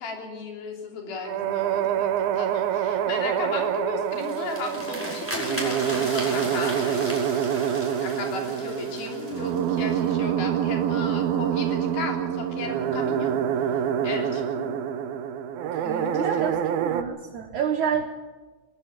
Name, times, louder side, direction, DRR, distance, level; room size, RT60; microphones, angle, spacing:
voice 1, 0.0-7.3 8.0-13.4 14.0-14.7 15.8-16.6, left 4 dB, 85° left, 2 dB, 5.1 m, -35 dB
sound 1, 1.2-17.0, right 9 dB, 85° right, 3.0 m, -26 dB
sound 2, 4.0-10.1, equal, 5° left, 7.1 m, -36 dB
voice 2, 16.2-18.1, right 8 dB, 65° right, 5 dB, 2.4 m, -28 dB
20.5 x 17.0 x 9.0 m, 1.2 s
omnidirectional pair, 4.1 m